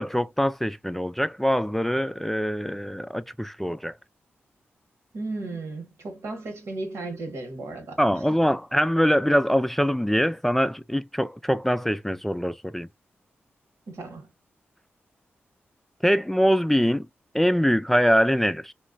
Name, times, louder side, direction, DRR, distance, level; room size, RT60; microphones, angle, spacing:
voice 1, 0.0-3.9 8.0-12.9 16.0-17.1 17.3-18.7, equal, 5° left, 0.3 m, -23 dB
voice 2, 5.1-8.2 13.9-14.3, right 2 dB, 80° right, 1.2 m, -35 dB
3.1 x 2.3 x 2.5 m
cardioid pair, 55°, 5 cm